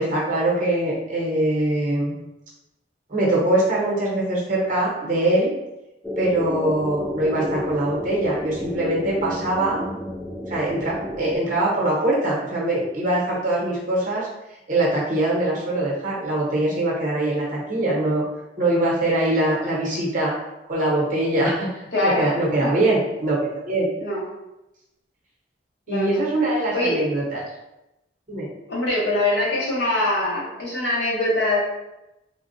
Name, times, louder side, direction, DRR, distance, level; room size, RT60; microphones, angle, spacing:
voice 1, 0.0-2.2 3.1-5.5 6.2-9.8 10.5-14.3 14.7-18.2 18.6-20.3 20.7-23.9 25.9-27.4 28.3-28.5, right 1 dB, 45° right, -5 dB, 0.9 m, -22 dB
sound 1, 6.0-11.4, left 1 dB, 5° left, 0.3 m, -31 dB
voice 2, 21.9-22.3 22.6-22.7 24.0-24.2 25.9-26.2 26.7-27.0 28.7-31.6, left 2 dB, 65° left, -5 dB, 1.0 m, -23 dB
3.4 x 2.3 x 2.6 m, 0.94 s
head